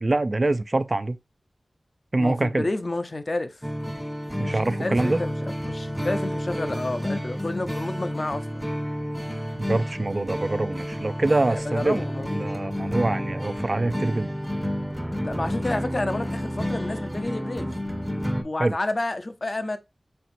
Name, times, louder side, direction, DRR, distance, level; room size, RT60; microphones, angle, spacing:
voice 1, 0.0-1.2 2.1-2.7 4.4-5.2 9.6-12.0 12.4-14.3 18.6-18.8, right 2 dB, 45° right, 0.3 m, -25 dB
voice 2, 2.2-3.6 4.5-8.6 11.4-12.5 15.2-17.7 18.4-19.8, left 2 dB, 45° left, 0.5 m, -30 dB
sound 1, 3.6-18.4, equal, 5° right, 0.6 m, -30 dB
4.4 x 4.0 x 2.5 m
wide cardioid pair, 70°, 0 cm